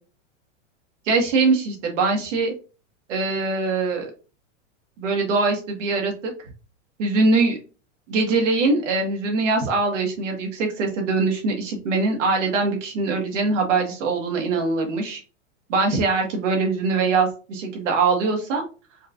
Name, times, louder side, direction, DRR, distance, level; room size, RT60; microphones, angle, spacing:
voice 1, 1.0-2.5 3.1-4.1 5.0-6.3 7.0-7.6 8.1-15.2 15.7-18.6, right 3 dB, 75° right, 2 dB, 1.8 m, -22 dB
4.4 x 3.2 x 2.6 m, 0.34 s
supercardioid pair, 145°, 37 cm